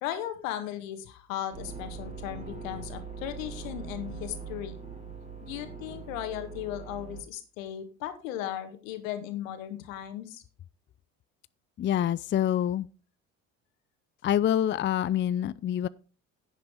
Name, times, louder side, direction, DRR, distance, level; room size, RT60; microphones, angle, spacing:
voice 1, 0.0-4.8 5.4-10.4, left 11 dB, 80° left, 1.8 m, -36 dB
sound 1, 1.5-7.2, right 5 dB, 20° right, 5.5 m, -41 dB
voice 2, 11.8-12.9 14.2-15.9, left 11 dB, 30° left, 0.5 m, -26 dB
10.5 x 8.0 x 4.9 m
hypercardioid pair, 60°, 39 cm